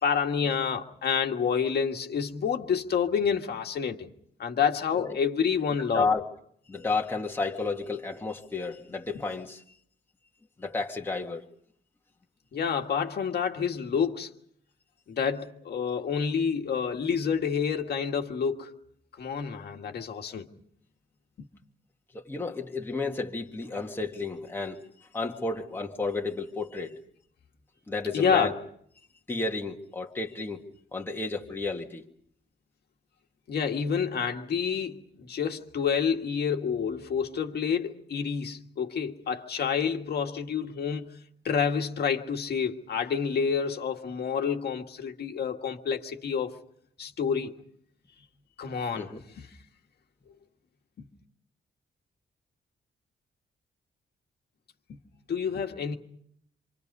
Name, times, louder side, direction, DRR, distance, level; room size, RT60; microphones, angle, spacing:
voice 1, 0.0-4.1 4.4-6.1 12.5-14.3 15.1-18.8 19.2-20.5 28.1-28.5 33.5-41.2 41.4-46.5 47.0-47.6 48.6-49.1 54.9-55.0 55.3-55.9, left 6 dB, 60° left, 1.8 m, -28 dB
voice 2, 6.7-9.6 10.6-11.5 22.1-24.8 25.1-26.9 27.9-28.6 29.3-30.6 30.9-32.0 48.9-49.2, left 3 dB, 10° left, 1.7 m, -32 dB
27.5 x 26.5 x 5.5 m
wide cardioid pair, 175°, 19 cm